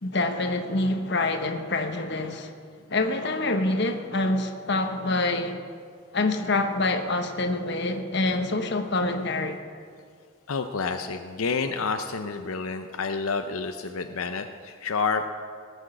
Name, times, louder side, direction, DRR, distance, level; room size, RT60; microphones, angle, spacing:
voice 1, 0.0-2.5 2.9-5.7 6.1-9.6, left 2 dB, 50° left, 1.0 m, -26 dB
voice 2, 10.5-15.2, left 4 dB, 80° left, 0.6 m, -29 dB
18.0 x 6.4 x 7.9 m
head